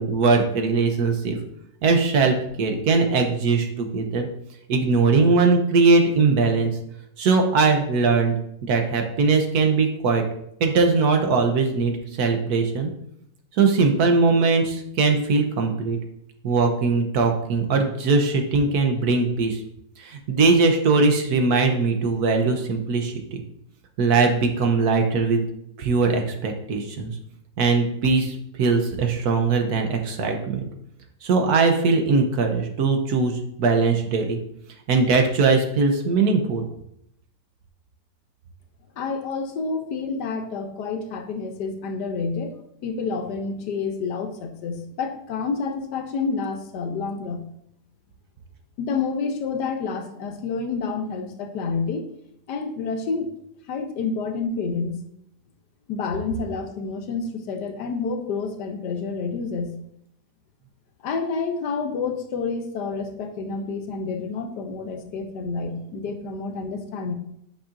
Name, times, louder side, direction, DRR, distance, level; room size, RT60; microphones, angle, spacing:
voice 1, 0.0-1.4 1.8-4.3 4.7-6.7 7.2-8.3 8.6-10.2 10.6-12.9 13.5-16.0 16.4-19.6 20.0-23.4 24.0-25.4 25.8-27.1 27.6-30.7 31.2-34.4 34.9-36.7, right 4 dB, 65° right, 4 dB, 1.2 m, -20 dB
voice 2, 39.0-42.5 42.8-47.4 48.8-52.1 52.5-53.3 53.7-55.0 55.9-59.7 61.0-67.1, left 4 dB, 75° left, 6 dB, 1.3 m, -29 dB
8.4 x 5.5 x 2.5 m, 0.74 s
omnidirectional pair, 1.9 m